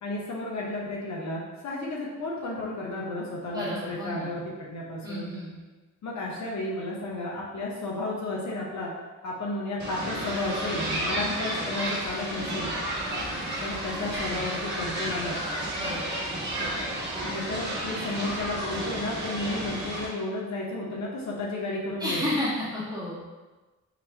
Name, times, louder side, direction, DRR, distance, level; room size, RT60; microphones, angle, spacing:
voice 1, 0.0-5.3 6.0-8.9 9.2-12.7 13.6-15.4 17.2-22.2, left 2 dB, 65° left, -3 dB, 0.8 m, -33 dB
voice 2, 3.5-4.3 5.0-5.5 11.1-11.3 15.7-16.2 22.0-23.3, left 1 dB, 10° right, -10 dB, 1.4 m, -32 dB
sound 1, 9.8-20.1, right 1 dB, 35° right, 0.9 m, -32 dB
3.9 x 3.0 x 3.3 m, 1.2 s
wide cardioid pair, 170°, 31 cm